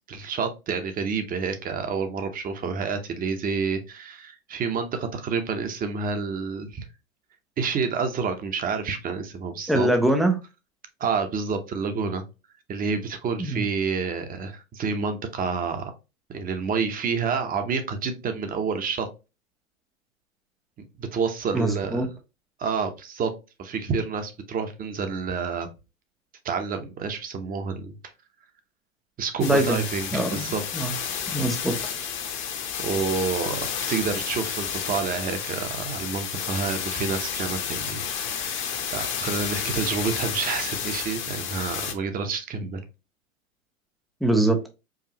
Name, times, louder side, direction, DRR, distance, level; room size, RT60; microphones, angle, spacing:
voice 1, 0.1-6.9 7.6-9.9 11.0-12.2 12.7-15.9 16.3-19.1 21.0-22.1 22.6-23.3 23.6-25.7 26.4-27.9 29.2-30.9 32.8-42.8, right 5 dB, 20° right, 8 dB, 0.7 m, -29 dB
voice 2, 9.7-10.3 13.4-13.6 21.5-22.1 29.4-29.8 30.1-30.5 30.7-30.9 31.3-31.7 44.2-44.7, right 1 dB, ahead, 4 dB, 0.4 m, -23 dB
sound 1, 29.4-41.9, left 7 dB, 30° left, 0.8 m, -31 dB
4.8 x 2.5 x 2.8 m, 0.28 s
hypercardioid pair, 100°, 42 cm